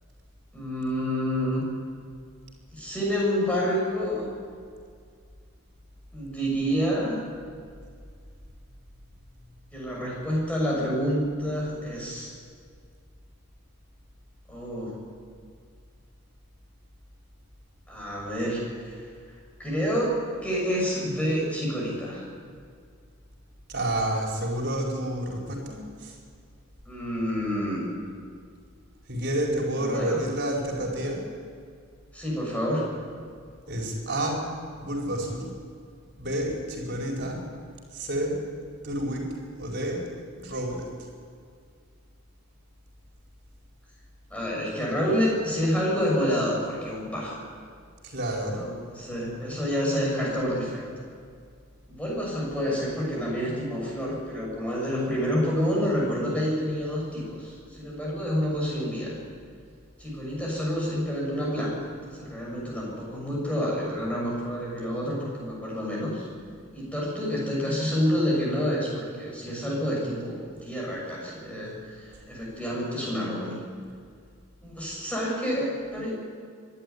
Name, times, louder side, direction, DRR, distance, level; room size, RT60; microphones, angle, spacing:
voice 1, 0.5-1.7 2.7-4.3 6.1-7.2 9.7-12.3 14.5-15.0 17.9-19.0 19.6-22.2 26.9-27.8 29.8-30.2 32.1-32.9 44.3-47.4 48.6-50.8 51.9-59.1 60.0-66.3 66.7-73.6 74.6-76.1, equal, 5° left, -4 dB, 7.0 m, -28 dB
voice 2, 23.7-26.1 29.1-31.2 33.7-34.5 34.8-35.5 36.2-37.4 37.9-38.4 38.8-40.0 40.4-40.9 48.0-48.6, right 1 dB, 50° right, -1 dB, 4.8 m, -29 dB
24.0 x 12.0 x 9.7 m, 2.1 s
head